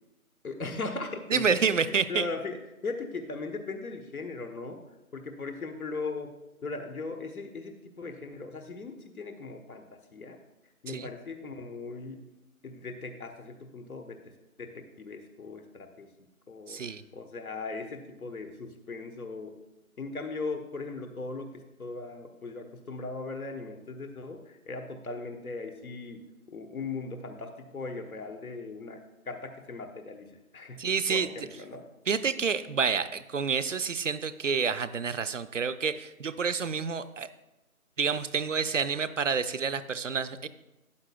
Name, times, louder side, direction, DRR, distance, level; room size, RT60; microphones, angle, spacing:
voice 1, 0.4-1.8 2.1-4.8 5.1-6.3 6.6-9.8 10.1-10.4 10.8-12.3 12.6-14.3 14.6-16.1 16.5-19.5 20.0-31.9, left 3 dB, 80° left, 5 dB, 1.2 m, -38 dB
voice 2, 1.3-2.3 10.9-11.1 16.7-17.0 30.8-31.3 32.1-37.3 38.0-40.5, right 6 dB, 60° right, 14 dB, 0.5 m, -28 dB
12.5 x 8.2 x 2.3 m, 0.98 s
figure-of-eight pair, 175°, 43 cm